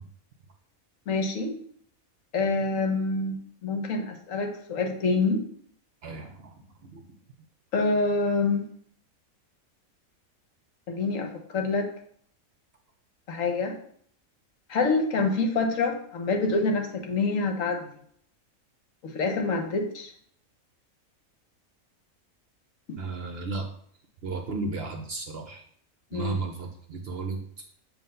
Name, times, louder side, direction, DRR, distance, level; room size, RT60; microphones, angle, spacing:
voice 1, 1.1-1.5 2.3-5.4 7.7-8.7 10.9-11.9 13.3-13.7 14.7-17.8 19.0-20.1 22.9-23.0 26.1-26.4, left 3 dB, 70° left, 4 dB, 1.2 m, -26 dB
voice 2, 6.0-6.5 6.8-7.0 23.0-23.7 24.2-25.6 26.1-27.4, right 3 dB, 55° right, 4 dB, 0.8 m, -34 dB
7.5 x 2.6 x 5.3 m, 0.63 s
omnidirectional pair, 1.5 m